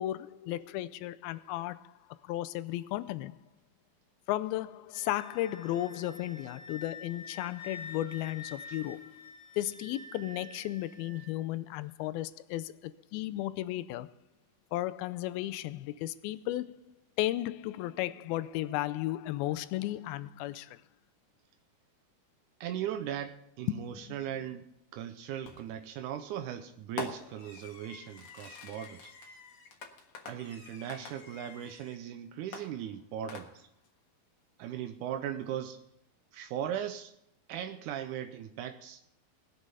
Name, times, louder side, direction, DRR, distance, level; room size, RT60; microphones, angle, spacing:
voice 1, 0.0-2.0 2.2-3.4 4.3-9.2 9.6-14.1 14.7-16.8 17.2-20.8 23.7-24.2, left 15 dB, 85° left, 2.5 m, -34 dB
Wind instrument woodwind instrument, 4.9-11.3, left 4 dB, 30° left, 3.5 m, -48 dB
voice 2, 22.6-24.7 24.9-29.1 30.3-33.7 34.6-35.8 36.3-37.1 37.5-39.0, right 10 dB, 85° right, 1.8 m, -38 dB
Fireworks, 25.4-25.9 27.0-32.0 32.5-33.9, left 4 dB, 55° left, 2.1 m, -46 dB
19.5 x 7.6 x 5.5 m
omnidirectional pair, 4.3 m